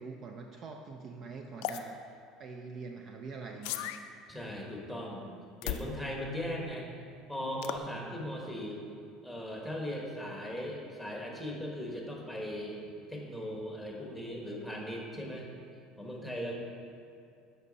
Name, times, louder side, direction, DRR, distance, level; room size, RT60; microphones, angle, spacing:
voice 1, 0.0-3.9, right 4 dB, 45° right, 3 dB, 0.5 m, -44 dB
sound 1, 1.6-1.8 3.6-4.0 5.6-5.9 7.6-7.8, left 12 dB, 80° left, 0.3 m, -35 dB
voice 2, 4.3-5.3 5.6-6.9 7.3-8.8 9.2-12.8 13.1-15.5 16.0-16.5, equal, 5° right, -2 dB, 1.3 m, -38 dB
8.1 x 5.4 x 4.0 m, 2.5 s
supercardioid pair, 120°, 0 cm